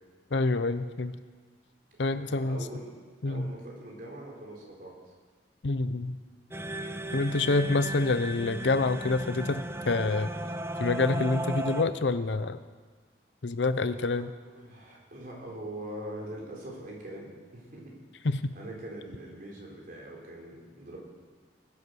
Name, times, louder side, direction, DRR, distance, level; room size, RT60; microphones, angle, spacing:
voice 1, 0.3-1.2 2.0-2.6 3.2-3.5 5.6-6.2 7.1-10.3 10.8-12.6 13.4-14.3 18.2-18.4, left 3 dB, 75° left, 12 dB, 0.7 m, -27 dB
voice 2, 2.1-5.0 13.9-17.9 18.2-18.3 18.6-21.0, right 1 dB, 50° right, -2 dB, 3.8 m, -43 dB
sound 1, 6.5-11.8, right 1 dB, 15° right, 0.6 m, -35 dB
21.0 x 8.4 x 6.3 m, 1.5 s
head